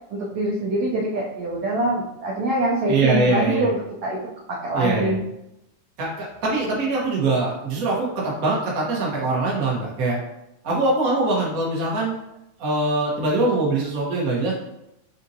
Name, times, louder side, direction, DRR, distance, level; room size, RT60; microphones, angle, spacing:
voice 1, 0.1-3.8 4.0-4.2 4.5-5.2, right 1 dB, 85° right, -4 dB, 1.3 m, -24 dB
voice 2, 2.9-3.7 4.7-5.2 6.0-10.2 10.6-12.1 12.6-14.5, right 2 dB, 70° right, -4 dB, 0.8 m, -23 dB
6.1 x 2.6 x 2.7 m, 0.85 s
omnidirectional pair, 3.5 m